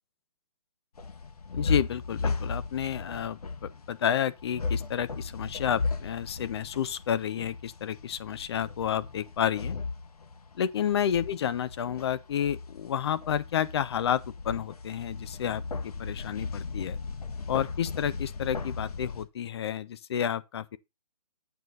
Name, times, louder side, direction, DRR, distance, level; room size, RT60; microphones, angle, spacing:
sound 1, 0.9-19.2, left 4 dB, 70° left, 1.3 m, -36 dB
voice 1, 1.5-9.8 10.6-17.0 17.5-20.8, left 9 dB, 40° left, 0.6 m, -30 dB
8.1 x 4.6 x 5.2 m
hypercardioid pair, 150°, 20 cm